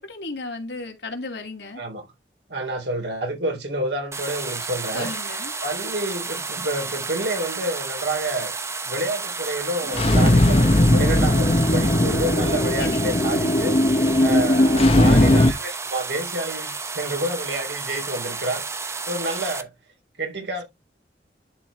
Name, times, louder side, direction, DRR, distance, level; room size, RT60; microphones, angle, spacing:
voice 1, 0.0-1.8 4.9-5.5 12.8-13.2, left 3 dB, 80° left, 2.6 m, -34 dB
voice 2, 1.7-2.1 2.5-5.1 5.6-8.5 8.8-18.6 19.1-19.7 20.2-20.6, right 1 dB, 85° right, 3.4 m, -29 dB
sound 1, 4.1-19.6, right 4 dB, 15° right, 0.7 m, -32 dB
sound 2, 9.9-15.5, left 1 dB, 35° left, 1.0 m, -18 dB
11.0 x 4.7 x 3.3 m
head